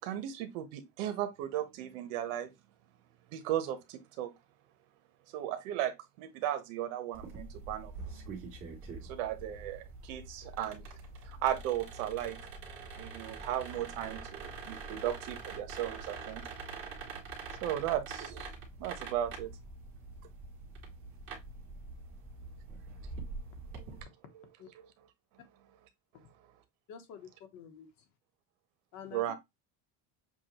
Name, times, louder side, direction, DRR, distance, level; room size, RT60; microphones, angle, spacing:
voice 1, 0.0-2.5 3.3-4.3 5.3-7.9 9.0-10.8 11.2-12.4 13.0-16.4 17.6-18.5 18.8-19.5 24.8-24.9 29.1-29.3, right 11 dB, 85° right, 1.2 m, -36 dB
sound 1, 7.1-24.0, right 4 dB, 30° right, 1.9 m, -45 dB
voice 2, 26.9-28.1 28.9-29.3, left 8 dB, 45° left, 1.1 m, -49 dB
7.1 x 2.4 x 3.0 m
cardioid pair, 170°, 39 cm